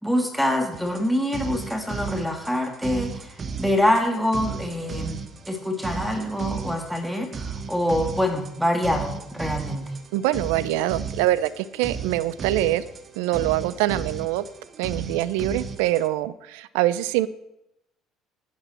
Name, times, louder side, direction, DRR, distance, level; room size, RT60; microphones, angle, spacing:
voice 1, 0.0-10.0, left 1 dB, ahead, 4 dB, 2.5 m, -25 dB
sound 1, 0.7-16.1, right 5 dB, 40° right, 1.3 m, -35 dB
voice 2, 10.1-12.8 13.2-14.5 14.8-17.3, right 14 dB, 75° right, 17 dB, 0.6 m, -24 dB
14.5 x 9.4 x 4.4 m, 0.85 s
hypercardioid pair, 65°, 0 cm